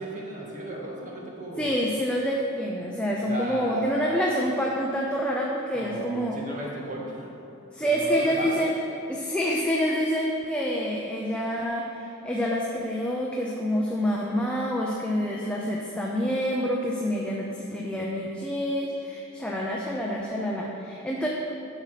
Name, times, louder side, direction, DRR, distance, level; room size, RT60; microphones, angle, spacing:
voice 1, 0.0-1.7 3.3-4.2 5.7-7.3 7.8-8.6, right 1 dB, 40° right, -3 dB, 2.0 m, -35 dB
voice 2, 1.6-6.4 7.7-8.7 9.1-21.3, equal, 5° left, -3 dB, 0.8 m, -27 dB
11.5 x 7.2 x 5.0 m, 2.6 s
head